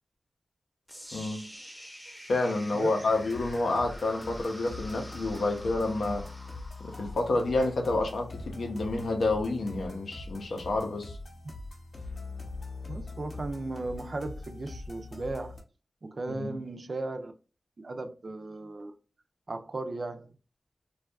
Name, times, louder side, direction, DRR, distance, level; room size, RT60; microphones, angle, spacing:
sound 1, 0.9-8.9, equal, 5° left, 0.5 m, -48 dB
voice 1, 1.1-1.5 2.3-6.3 6.8-11.2 16.3-16.6, left 2 dB, 90° left, 0.6 m, -29 dB
sound 2, 3.1-15.6, left 2 dB, 50° left, 0.6 m, -42 dB
voice 2, 12.9-15.6 16.0-17.3 17.8-18.9 19.5-20.3, right 2 dB, 50° right, 0.3 m, -36 dB
2.6 x 2.3 x 2.3 m
wide cardioid pair, 115°, 0 cm